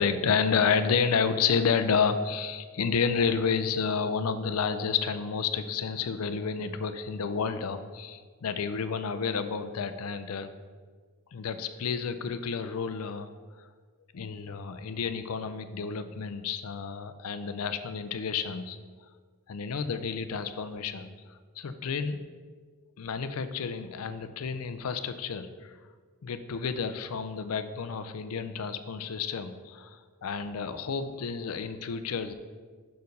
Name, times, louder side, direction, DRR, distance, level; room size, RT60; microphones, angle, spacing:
voice 1, 0.0-10.5 11.3-13.3 14.1-18.8 19.5-21.1 21.6-22.2 23.0-25.7 26.2-32.3, left 6 dB, 70° left, 11 dB, 0.5 m, -30 dB
6.5 x 4.6 x 5.2 m, 1.5 s
head